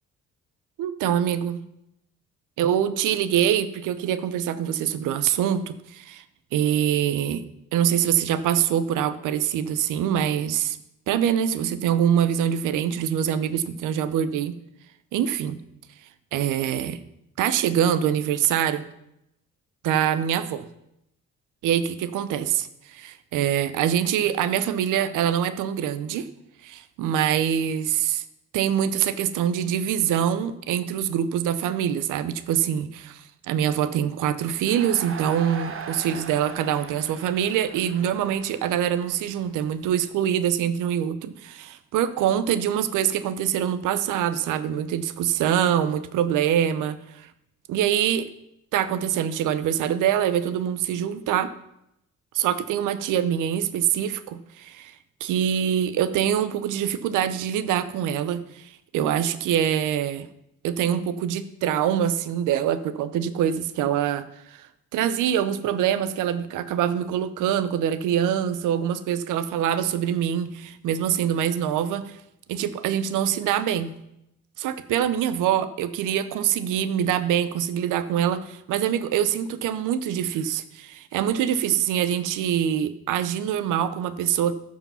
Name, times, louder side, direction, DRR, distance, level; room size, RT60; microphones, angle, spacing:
voice 1, 0.8-1.6 2.6-6.2 6.5-7.4 7.7-10.8 11.1-14.5 15.1-15.6 16.3-17.0 17.4-18.9 19.8-20.7 21.6-26.3 26.6-28.2 28.5-47.3 47.7-48.3 48.7-51.5 52.3-54.9 55.2-60.3 60.6-64.7 64.9-72.2 72.5-73.9 74.6-84.5, right 9 dB, 90° right, 13 dB, 0.7 m, -24 dB
Crowd, 34.7-39.9, right 6 dB, 45° right, 1.2 m, -39 dB
14.5 x 4.9 x 5.6 m, 0.83 s
cardioid pair, 90°, 30 cm